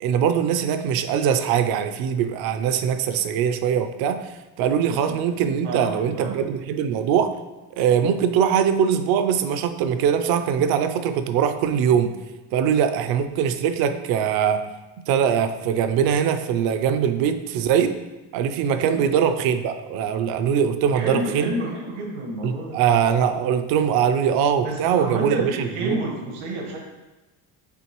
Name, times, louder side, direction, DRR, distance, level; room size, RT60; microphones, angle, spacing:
voice 1, 0.0-7.3 7.8-12.1 12.5-14.7 15.1-18.0 18.3-21.5 22.4-26.0, right 8 dB, 60° right, 9 dB, 0.5 m, -22 dB
voice 2, 4.9-6.4 18.7-19.0 20.9-22.8 24.6-26.8, right 1 dB, 85° right, 0 dB, 1.5 m, -30 dB
6.9 x 4.5 x 3.0 m, 1.1 s
cardioid pair, 170°, 40 cm